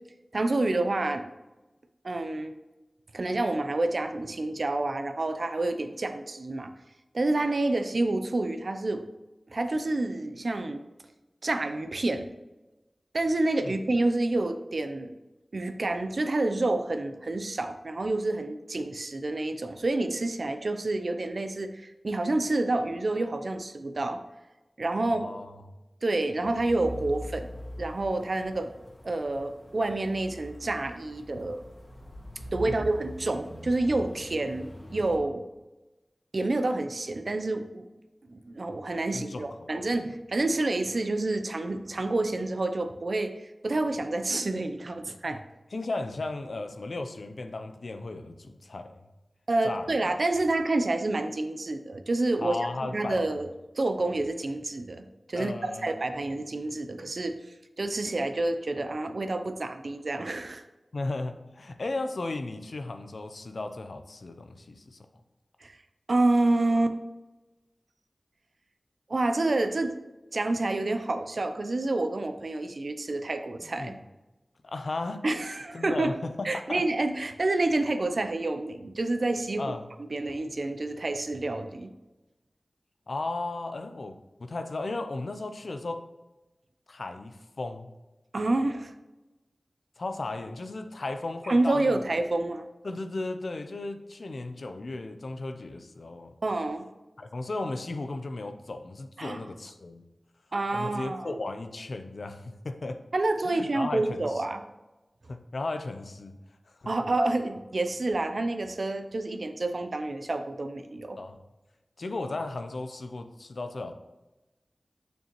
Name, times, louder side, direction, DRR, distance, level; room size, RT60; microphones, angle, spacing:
voice 1, 0.3-1.3 2.0-2.5 3.1-6.7 7.1-9.0 9.5-10.8 11.4-12.3 13.1-15.1 15.5-24.2 24.8-25.2 26.0-27.5 27.8-28.7 29.0-31.6 32.5-35.4 36.3-37.9 38.3-43.3 43.6-45.4 49.5-53.5 53.8-57.4 57.8-60.6 65.6-65.8 66.1-67.0 69.1-69.9 70.3-73.9 75.2-76.1 76.4-79.7 80.0-81.9 88.3-88.9 91.5-92.7 96.4-96.8 99.2-99.4 100.5-101.4 103.1-104.6 106.9-111.2, right 2 dB, 70° right, 8 dB, 0.7 m, -28 dB
voice 2, 25.0-25.6 32.6-32.8 39.1-39.9 45.7-48.9 49.6-50.1 52.4-53.4 55.3-56.0 60.9-65.0 73.8-74.0 74.6-75.2 75.7-76.8 79.6-79.9 83.1-86.1 86.9-87.9 90.0-92.0 92.8-96.4 97.2-100.0 100.7-103.0 103.4-104.4 105.3-106.4 106.8-106.9 111.2-111.4 112.0-113.9, left 2 dB, 80° left, 8 dB, 0.6 m, -35 dB
sound 1, 26.4-35.2, equal, 50° left, 1.7 m, -43 dB
6.8 x 6.5 x 3.1 m, 1.0 s
wide cardioid pair, 50°, 0 cm